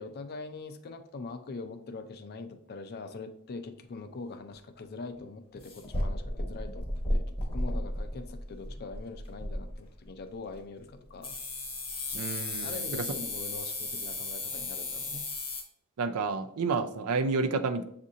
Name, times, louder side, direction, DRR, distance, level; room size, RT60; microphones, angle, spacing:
voice 1, 0.0-11.4 12.6-15.2, left 3 dB, 45° left, 9 dB, 0.4 m, -43 dB
sound 1, 4.5-4.6 5.0-5.2 5.6-10.0 10.5-10.6 11.2-15.6, left 1 dB, 25° left, 0.8 m, -34 dB
voice 2, 12.1-13.0 16.0-17.8, right 4 dB, 70° right, 8 dB, 0.4 m, -30 dB
7.2 x 2.5 x 2.7 m, 0.70 s
head